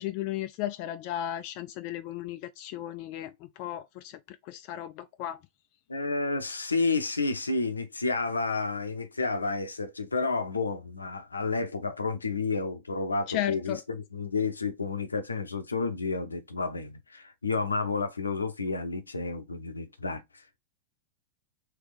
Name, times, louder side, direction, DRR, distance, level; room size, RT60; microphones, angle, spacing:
voice 1, 0.0-5.4 13.3-13.8, left 12 dB, 45° left, 0.4 m, -35 dB
voice 2, 5.9-20.6, left 4 dB, 80° left, 0.7 m, -31 dB
3.4 x 3.2 x 4.8 m
figure-of-eight pair, 90°, 0 cm